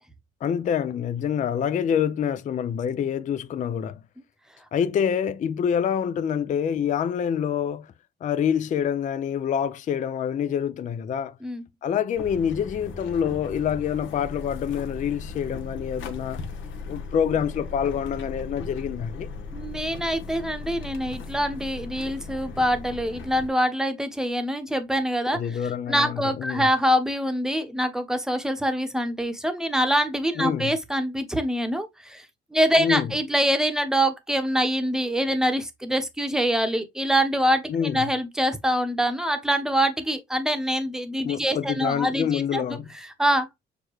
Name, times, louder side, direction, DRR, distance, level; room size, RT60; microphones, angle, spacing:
voice 1, 0.4-4.0 4.7-7.9 8.2-11.4 11.8-16.4 16.9-19.3 25.3-26.7 30.4-30.8 32.8-33.1 37.7-38.1 41.2-42.9, left 8 dB, 40° left, 0.4 m, -26 dB
sound 1, 12.1-23.5, left 4 dB, 75° left, 1.0 m, -37 dB
voice 2, 19.5-25.4 25.9-32.2 32.5-42.6 43.0-43.5, equal, 5° right, 0.9 m, -25 dB
6.5 x 2.2 x 3.0 m
cardioid pair, 90°, 20 cm